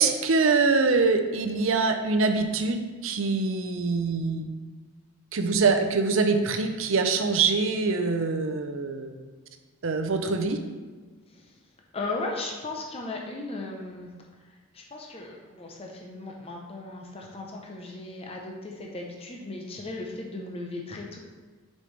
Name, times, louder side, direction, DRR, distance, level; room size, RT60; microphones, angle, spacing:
voice 1, 0.0-4.5 5.3-9.1 9.8-10.6, right 4 dB, 60° right, 6 dB, 0.6 m, -24 dB
voice 2, 11.9-14.1 14.7-21.2, left 2 dB, 25° left, 0 dB, 0.7 m, -36 dB
6.6 x 5.4 x 3.3 m, 1.4 s
head